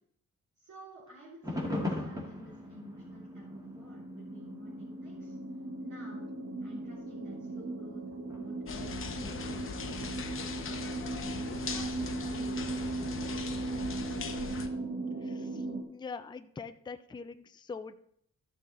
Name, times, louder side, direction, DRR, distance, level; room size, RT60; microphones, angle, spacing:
voice 1, 0.6-5.4 5.8-6.2 6.6-10.0 11.4-13.3, equal, 75° right, -8 dB, 3.5 m, -52 dB
sound 1, 1.4-7.0 7.5-9.3 10.0-10.1, left 2 dB, 10° right, 2.1 m, -40 dB
sound 2, 2.0-15.8, right 2 dB, 45° right, 1.4 m, -38 dB
sound 3, 8.7-14.7, left 5 dB, 45° left, 1.0 m, -40 dB
voice 2, 15.2-15.6 15.9-17.9, left 5 dB, 15° left, 9 dB, 0.4 m, -43 dB
13.0 x 6.1 x 4.0 m, 0.68 s
wide cardioid pair, 140°, 30 cm